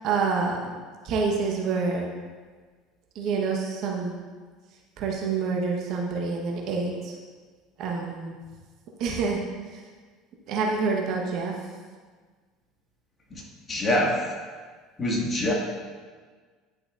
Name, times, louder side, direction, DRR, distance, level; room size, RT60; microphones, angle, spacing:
voice 1, 0.0-0.7 1.0-2.0 3.1-4.2 5.0-7.2 7.8-8.3 9.0-9.4 9.7-9.8 10.5-11.5, right 4 dB, 60° right, 0 dB, 1.3 m, -27 dB
voice 2, 13.7-14.2 15.0-15.5, left 1 dB, 30° left, -2 dB, 2.0 m, -24 dB
10.5 x 5.9 x 2.6 m, 1.5 s
hypercardioid pair, 75°, 0 cm